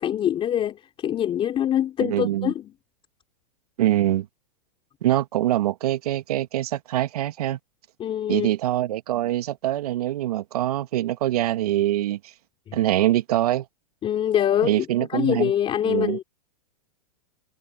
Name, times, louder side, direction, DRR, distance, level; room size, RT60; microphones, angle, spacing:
voice 1, 0.0-2.7 8.0-8.5 12.7-12.8 14.0-16.2, left 10 dB, 25° left, 3.0 m, -24 dB
voice 2, 2.0-2.5 3.8-4.3 5.0-7.6 8.3-12.3 12.7-13.7 14.6-15.5 15.8-16.2, right 13 dB, 70° right, 1.7 m, -24 dB
hypercardioid pair, 115°, 20 cm